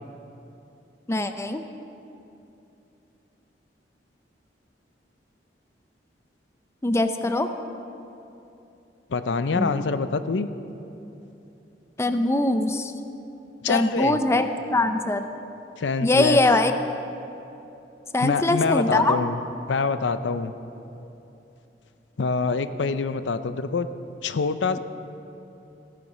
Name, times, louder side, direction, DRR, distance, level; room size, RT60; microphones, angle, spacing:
voice 1, 1.1-1.6 6.8-7.5 9.6-9.9 12.0-12.9 13.7-15.3 16.0-16.7 18.1-19.2, left 2 dB, 15° left, 8 dB, 0.5 m, -22 dB
voice 2, 9.1-10.5 13.6-14.2 15.8-16.4 18.2-19.4 19.7-20.5 22.2-23.9 24.2-24.8, left 4 dB, 85° left, 11 dB, 0.5 m, -25 dB
15.5 x 9.6 x 6.0 m, 2.9 s
head